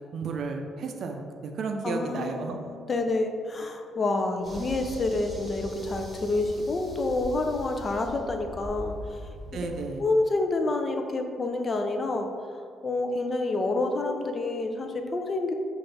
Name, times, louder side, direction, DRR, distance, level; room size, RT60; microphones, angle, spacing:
voice 1, 0.1-2.6 9.5-10.1, right 4 dB, 65° right, 4 dB, 0.4 m, -33 dB
voice 2, 1.8-9.2 9.6-9.7 10.0-12.3 12.8-15.5, left 2 dB, 35° left, 4 dB, 0.5 m, -28 dB
sound 1, 4.4-9.9, equal, 20° right, 1.1 m, -41 dB
5.8 x 2.5 x 3.3 m, 2.2 s
cardioid pair, 90°, 0 cm